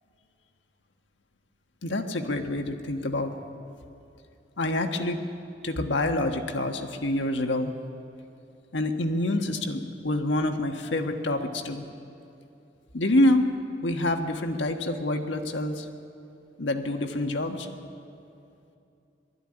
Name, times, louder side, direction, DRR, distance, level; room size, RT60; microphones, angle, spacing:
voice 1, 1.8-3.3 4.6-5.2 5.6-7.7 8.7-11.9 12.9-13.5 13.8-15.9 16.6-17.7, left 1 dB, 90° left, 5 dB, 1.5 m, -27 dB
20.5 x 13.5 x 9.9 m, 2.7 s
head